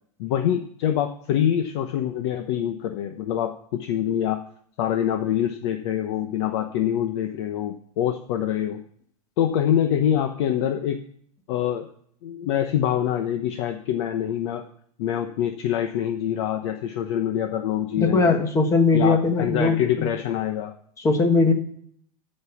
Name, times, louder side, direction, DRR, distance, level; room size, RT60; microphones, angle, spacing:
voice 1, 0.2-4.4 4.8-8.8 9.4-11.0 11.5-11.9 12.2-14.6 15.0-18.4 18.9-20.7, left 10 dB, 45° left, 6 dB, 1.0 m, -25 dB
voice 2, 18.0-20.1 21.0-21.5, left 3 dB, 15° left, 5 dB, 1.5 m, -20 dB
14.5 x 5.5 x 7.1 m, 0.63 s
supercardioid pair, 160°, 19 cm